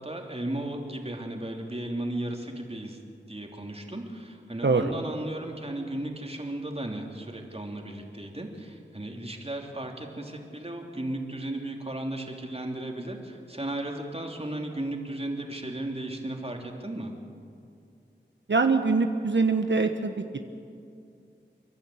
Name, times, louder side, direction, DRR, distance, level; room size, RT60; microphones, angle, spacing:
voice 1, 0.0-3.0 3.3-17.1, right 1 dB, 30° right, 2 dB, 3.1 m, -35 dB
voice 2, 4.6-4.9 18.5-20.4, right 4 dB, 70° right, 6 dB, 1.1 m, -24 dB
29.5 x 11.5 x 8.7 m, 2.4 s
wide cardioid pair, 50°, 19 cm